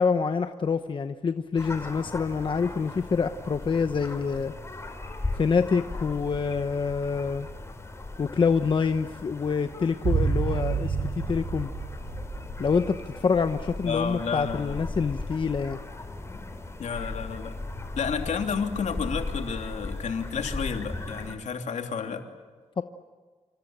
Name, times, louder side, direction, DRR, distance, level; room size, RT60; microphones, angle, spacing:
voice 1, 0.0-4.5 5.3-7.5 8.2-11.7 12.6-15.8 22.8-22.9, left 5 dB, 40° left, 8 dB, 1.0 m, -26 dB
sound 1, 1.6-21.4, left 2 dB, 20° left, 4.2 m, -38 dB
sound 2, 10.0-14.3 14.5-14.6, right 5 dB, 75° right, 6.7 m, -30 dB
voice 2, 13.8-14.8 16.8-17.6 17.9-22.3, left 6 dB, 70° left, 5 dB, 3.0 m, -31 dB
27.5 x 26.5 x 8.1 m, 1.5 s
wide cardioid pair, 130°, 13 cm